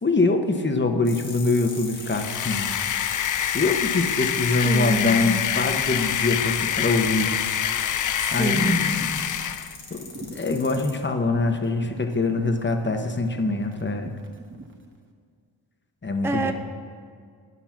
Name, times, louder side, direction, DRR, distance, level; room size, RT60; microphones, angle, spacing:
voice 1, 0.0-2.7 3.5-7.4 8.3-9.3 9.9-14.1 16.0-16.5, left 3 dB, 25° left, 5 dB, 1.0 m, -24 dB
sound 1, 1.0-10.9, left 4 dB, 90° left, 1.6 m, -41 dB
sound 2, 2.0-9.8, left 9 dB, 45° left, 0.4 m, -26 dB
voice 2, 4.6-5.5 8.4-8.9 16.2-16.5, right 2 dB, 5° right, 4 dB, 0.6 m, -26 dB
sound 3, 9.9-14.8, right 1 dB, 25° right, 1.3 m, -42 dB
11.0 x 5.6 x 5.9 m, 2.1 s
cardioid pair, 55°, 46 cm